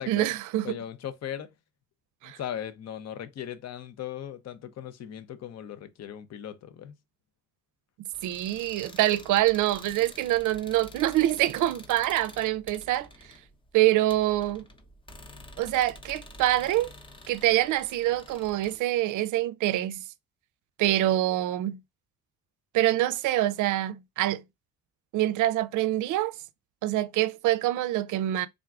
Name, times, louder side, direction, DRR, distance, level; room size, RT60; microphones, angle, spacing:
voice 1, 0.0-0.8 2.2-2.4 8.2-13.1 13.7-14.6 15.6-16.9 17.3-20.0 20.8-21.8 22.7-24.4 25.1-26.4 26.8-28.5, right 15 dB, 80° right, 0.5 m, -25 dB
voice 2, 0.6-1.5 2.2-6.9, left 10 dB, 60° left, 0.7 m, -38 dB
sound 1, 8.1-18.8, left 1 dB, 15° left, 0.7 m, -49 dB
3.6 x 2.4 x 3.5 m
cardioid pair, 90°, 30 cm